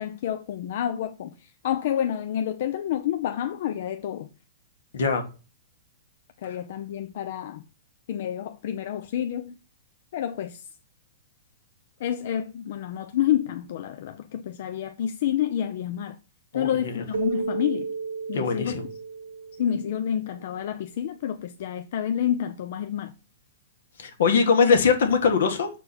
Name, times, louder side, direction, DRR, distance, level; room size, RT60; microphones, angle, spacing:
voice 1, 0.0-4.3 6.4-7.6 8.1-9.5 10.1-10.7 12.0-16.2 16.5-17.9 18.3-18.8 19.6-23.1, left 10 dB, 60° left, 0.5 m, -29 dB
voice 2, 4.9-5.2 16.5-17.0 18.3-18.9 24.0-25.7, left 5 dB, 80° left, 1.6 m, -22 dB
Keyboard (musical), 17.1-20.3, right 5 dB, 80° right, 1.0 m, -33 dB
6.4 x 4.6 x 4.1 m
hypercardioid pair, 150°, 0 cm